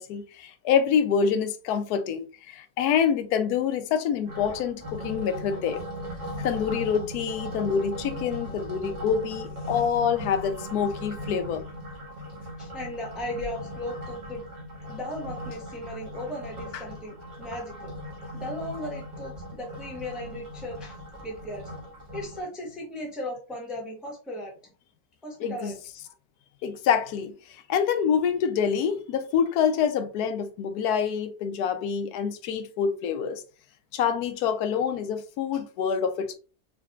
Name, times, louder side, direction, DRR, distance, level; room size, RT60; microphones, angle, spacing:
voice 1, 0.0-5.8 6.4-11.6 25.4-25.7 26.6-33.4 33.9-36.4, left 7 dB, 85° left, 1.1 m, -26 dB
sound 1, 4.3-22.4, equal, 35° right, 0.8 m, -38 dB
voice 2, 12.6-14.4 14.9-17.9 18.2-21.0 21.2-21.7 22.1-24.5 25.2-25.7, left 1 dB, ahead, 0.6 m, -37 dB
3.6 x 3.2 x 2.3 m
omnidirectional pair, 1.6 m